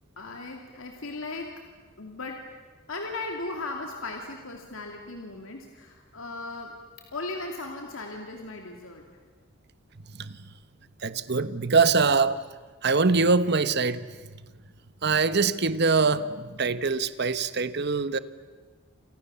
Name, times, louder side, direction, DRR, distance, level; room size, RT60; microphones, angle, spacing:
voice 1, 0.2-1.5 2.0-2.4 2.9-6.8 7.1-9.1, left 2 dB, 80° left, 2 dB, 2.7 m, -37 dB
voice 2, 10.1-10.5 11.0-12.4 12.8-14.2 15.0-18.2, right 4 dB, 55° right, 13 dB, 1.1 m, -23 dB
30.0 x 28.5 x 7.0 m, 1.4 s
head